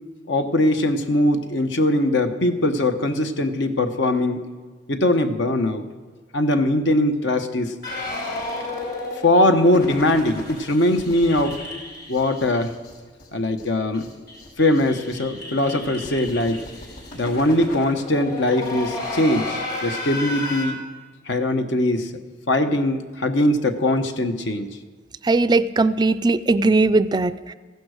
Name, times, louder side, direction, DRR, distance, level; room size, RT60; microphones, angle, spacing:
voice 1, 0.3-4.4 4.9-5.8 6.3-7.7 9.2-11.6 12.1-12.7 13.3-14.1 14.6-16.6 17.1-20.8 21.3-22.1 22.5-24.7, left 1 dB, 75° left, 7 dB, 1.1 m, -21 dB
sound 1, 7.8-12.9 13.2-13.3 13.6-13.7 13.9-20.6, left 2 dB, 60° left, 4.9 m, -33 dB
voice 2, 25.2-27.5, right 3 dB, 25° right, 15 dB, 0.4 m, -19 dB
15.0 x 11.5 x 6.4 m, 1.5 s
head